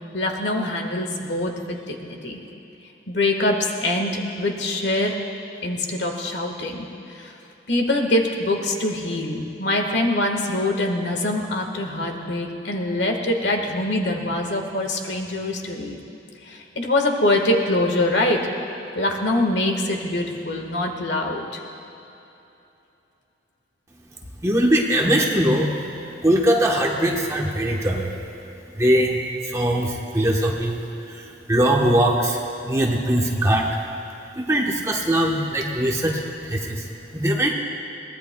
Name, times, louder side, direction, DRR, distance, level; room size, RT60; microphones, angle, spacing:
voice 1, 0.1-2.4 3.1-5.1 5.6-6.9 7.1-7.3 7.7-16.0 16.4-18.4 18.9-21.6, left 1 dB, 75° left, 2 dB, 1.5 m, -24 dB
voice 2, 24.4-25.7 26.2-28.1 28.8-30.8 31.1-33.6 34.4-36.9 37.1-37.5, right 1 dB, 15° right, -1 dB, 1.0 m, -21 dB
22.5 x 18.0 x 2.3 m, 2.9 s
head